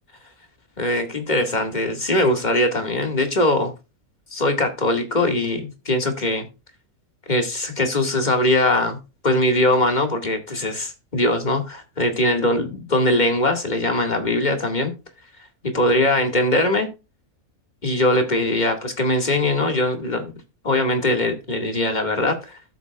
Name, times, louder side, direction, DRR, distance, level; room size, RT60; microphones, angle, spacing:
voice 1, 0.8-3.7 4.3-6.5 7.3-9.0 9.2-15.0 15.7-16.9 17.8-20.2 20.6-22.8, left 1 dB, 30° left, 2.2 m, -21 dB
13.5 x 8.2 x 2.4 m
omnidirectional pair, 1.5 m